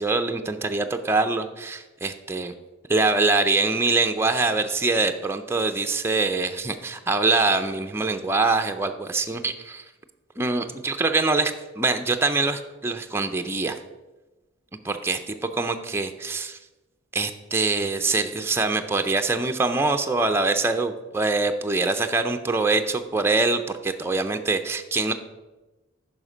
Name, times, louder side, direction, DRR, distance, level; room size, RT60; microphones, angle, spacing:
voice 1, 0.0-2.5 2.9-9.8 10.4-13.8 14.8-16.6 17.1-25.1, right 3 dB, 10° right, 6 dB, 0.4 m, -24 dB
9.5 x 5.7 x 5.0 m, 1.1 s
head